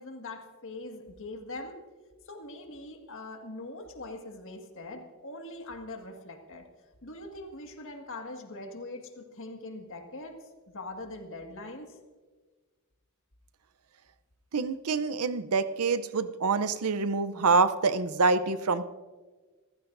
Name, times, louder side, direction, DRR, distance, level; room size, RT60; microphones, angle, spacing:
voice 1, 0.0-1.8 2.3-6.7 7.0-12.0, left 2 dB, 60° left, 3 dB, 1.9 m, -42 dB
voice 2, 14.5-18.8, right 4 dB, 85° right, 13 dB, 0.7 m, -26 dB
27.5 x 15.0 x 2.6 m, 1.4 s
head